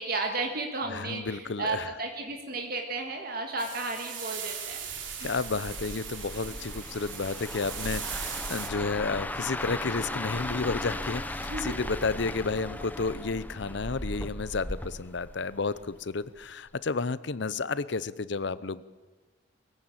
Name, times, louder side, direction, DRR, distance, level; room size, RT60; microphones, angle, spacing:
voice 1, 0.0-4.8 5.2-5.3 11.4-11.8, right 3 dB, 50° right, 3 dB, 1.9 m, -33 dB
voice 2, 0.9-1.9 5.2-18.8, left 4 dB, 65° left, 17 dB, 0.7 m, -31 dB
sound 1, 3.6-8.7, right 8 dB, 80° right, 3.0 m, -39 dB
sound 2, 4.9-16.0 16.4-16.7, left 1 dB, 10° left, 0.8 m, -37 dB
23.0 x 15.5 x 8.8 m, 1.3 s
head